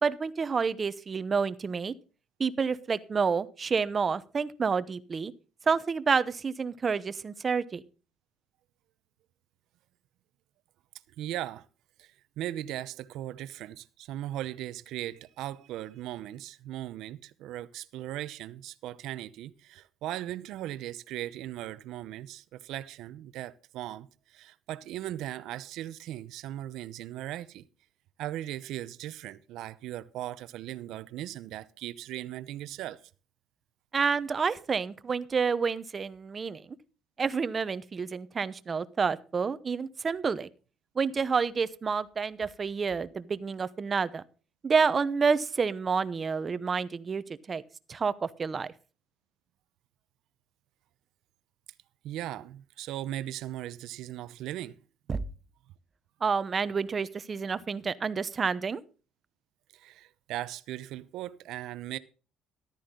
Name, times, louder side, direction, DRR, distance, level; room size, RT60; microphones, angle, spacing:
voice 1, 0.0-1.9 2.4-5.3 5.7-7.8 33.9-36.6 37.2-40.5 40.9-44.2 44.6-47.6 47.9-48.7 55.1-55.2 56.2-58.8, right 5 dB, 30° right, 0.9 m, -29 dB
voice 2, 11.2-11.7 12.0-27.7 28.2-33.1 52.0-54.8 59.7-62.0, right 13 dB, 75° right, 0.8 m, -38 dB
14.0 x 12.5 x 3.8 m
cardioid pair, 125°, 0 cm